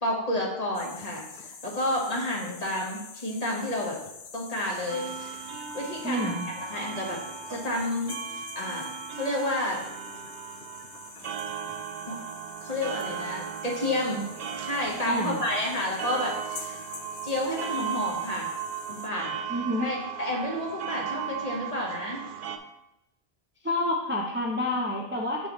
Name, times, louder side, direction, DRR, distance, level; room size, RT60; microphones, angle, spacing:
voice 1, 0.0-4.0 4.3-5.3 5.7-6.3 6.6-7.2 7.5-8.8 9.2-9.8 12.1-12.2 12.6-14.2 14.6-16.8 17.2-18.5 18.9-19.4 19.8-22.2, left 1 dB, 40° left, -2 dB, 1.4 m, -30 dB
sound 1, 0.7-19.1, left 5 dB, 75° left, 1.0 m, -46 dB
sound 2, 4.6-22.6, right 7 dB, 60° right, 0.7 m, -37 dB
voice 2, 6.0-6.5 15.1-15.4 19.5-19.9 23.6-25.5, left 1 dB, 15° right, -1 dB, 0.6 m, -28 dB
6.7 x 6.1 x 3.1 m, 0.87 s
omnidirectional pair, 1.1 m